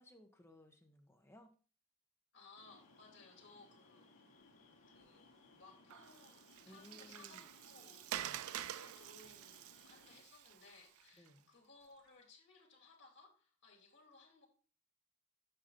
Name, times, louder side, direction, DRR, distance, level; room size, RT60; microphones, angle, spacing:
voice 1, 0.0-1.5 6.6-7.5 8.1-8.4 11.1-11.5, left 1 dB, 10° left, 1.0 m, -60 dB
voice 2, 2.3-4.1 4.9-14.5, left 3 dB, 55° left, 3.0 m, -62 dB
sound 1, 2.6-10.2, left 3 dB, 75° left, 2.2 m, -65 dB
sound 2, 4.9-12.3, right 1 dB, 65° right, 4.5 m, -79 dB
Water, 5.9-11.3, right 12 dB, 90° right, 0.4 m, -48 dB
7.8 x 5.9 x 4.2 m
head